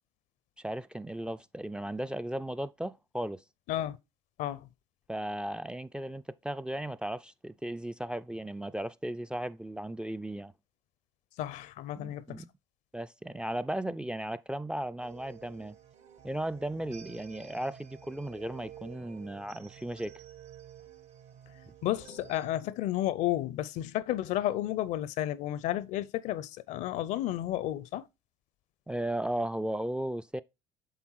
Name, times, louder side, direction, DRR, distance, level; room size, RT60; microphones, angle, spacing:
voice 1, 0.6-3.4 5.1-10.5 12.0-12.5 12.9-15.8 16.2-20.1 28.9-30.4, right 1 dB, 5° right, 0.3 m, -36 dB
voice 2, 11.4-12.4 21.8-28.0, left 13 dB, 65° left, 0.6 m, -32 dB
sound 1, 15.0-22.5, right 10 dB, 60° right, 1.2 m, -51 dB
8.0 x 3.5 x 4.6 m
hypercardioid pair, 70°, 14 cm